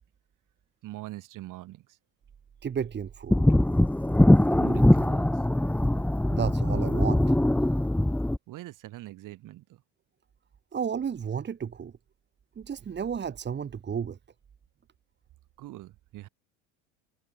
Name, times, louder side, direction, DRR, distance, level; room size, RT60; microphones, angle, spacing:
voice 1, 0.8-1.8 4.6-5.3 8.5-9.6 15.6-16.3, right 16 dB, 55° right, 6.0 m, -42 dB
voice 2, 2.6-3.4 6.3-7.4 10.7-11.9 12.6-14.2, right 7 dB, 30° right, 2.3 m, -32 dB
sound 1, 3.3-8.4, left 1 dB, 5° left, 1.7 m, -22 dB
supercardioid pair, 95°, 37 cm